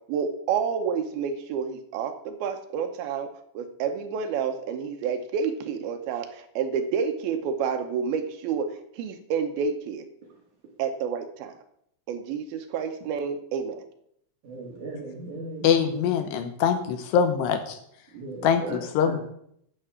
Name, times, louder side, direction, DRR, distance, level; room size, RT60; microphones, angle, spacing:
voice 1, 0.0-3.3 3.6-10.1 10.8-11.5 12.1-13.8, right 6 dB, 80° right, 6 dB, 2.2 m, -29 dB
voice 2, 14.4-15.9 18.1-19.2, right 2 dB, 50° right, -1 dB, 2.8 m, -37 dB
voice 3, 15.6-17.8 18.4-19.2, left 7 dB, 75° left, 7 dB, 2.7 m, -23 dB
12.5 x 4.7 x 8.0 m, 0.70 s
omnidirectional pair, 5.4 m